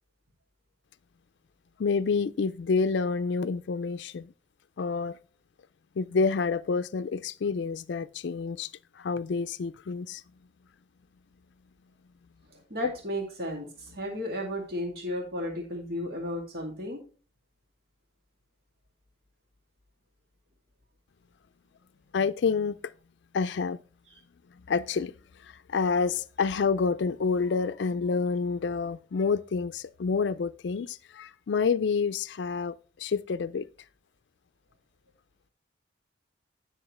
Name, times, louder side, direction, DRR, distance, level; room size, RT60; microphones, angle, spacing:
voice 1, 1.8-4.3 4.8-5.2 6.0-8.7 9.0-10.2 12.8-12.9 22.1-22.8 23.3-23.8 24.7-25.1 25.7-33.7, left 5 dB, 65° left, 0.4 m, -28 dB
voice 2, 12.5-13.7 13.9-17.0, equal, 60° right, 2.2 m, -34 dB
10.0 x 6.4 x 3.1 m
head